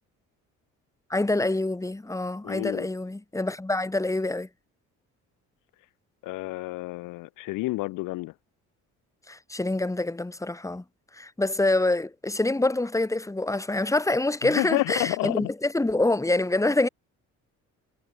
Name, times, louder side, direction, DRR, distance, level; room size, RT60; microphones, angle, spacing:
voice 1, 1.1-4.5 9.3-10.8 11.2-16.9, left 2 dB, 10° left, 1.7 m, -26 dB
voice 2, 2.4-2.9 6.2-8.3 14.4-15.5, left 20 dB, 85° left, 0.6 m, -29 dB
cardioid pair, 90°, 32 cm